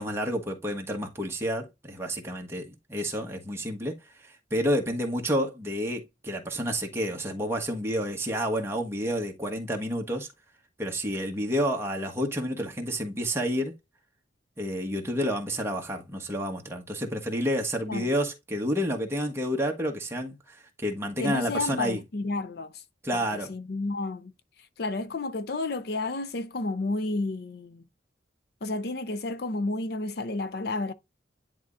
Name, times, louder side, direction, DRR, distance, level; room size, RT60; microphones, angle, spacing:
voice 1, 0.0-4.0 4.2-10.3 10.8-13.8 14.6-22.0 23.0-23.5, equal, 15° right, 1.4 m, -30 dB
voice 2, 21.2-22.8 23.1-23.2 23.5-24.3 24.8-27.8 28.6-30.9, left 2 dB, 55° left, 0.6 m, -31 dB
10.5 x 3.6 x 2.6 m
head